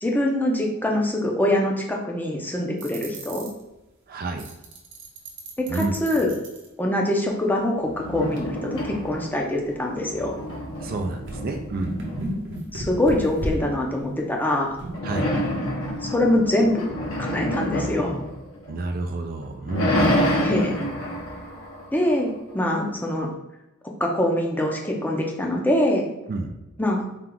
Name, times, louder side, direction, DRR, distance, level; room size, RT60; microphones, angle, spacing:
voice 1, 0.0-3.5 5.6-6.3 6.8-10.3 12.7-14.7 16.1-16.8 17.2-18.2 20.4-20.8 21.9-23.3 24.0-26.1 26.8-27.0, left 1 dB, 10° left, 0 dB, 0.6 m, -24 dB
sound 1, 2.8-3.6 4.4-6.7 8.3-8.4 8.9-9.0 10.0-10.1 10.5-10.6 11.3-15.0, right 1 dB, 60° right, 1.0 m, -33 dB
voice 2, 4.1-4.5 5.7-6.0 10.8-12.0 15.0-15.3 18.7-20.3 26.3-26.5, right 3 dB, 45° right, 5 dB, 0.4 m, -29 dB
sound 2, 7.8-9.5 9.8-12.6 14.9-19.0 19.4-22.5, equal, 70° left, 1.0 m, -28 dB
4.4 x 2.3 x 3.8 m, 0.97 s
head